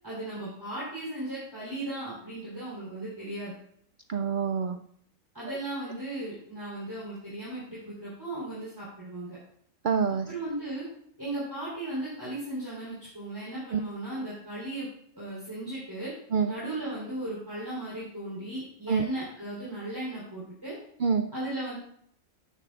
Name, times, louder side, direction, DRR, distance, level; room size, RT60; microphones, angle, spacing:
voice 1, 0.0-3.6 5.3-9.4 10.3-10.9 11.2-14.9 15.1-16.1 16.4-20.8 21.3-21.7, right 1 dB, 15° right, -9 dB, 3.8 m, -36 dB
voice 2, 4.1-4.8 5.5-5.6 9.8-10.3 13.7-13.8 16.3-16.5 18.9-19.1 21.0-21.3, right 6 dB, 75° right, 7 dB, 0.4 m, -26 dB
10.5 x 9.8 x 2.5 m, 0.66 s
omnidirectional pair, 1.4 m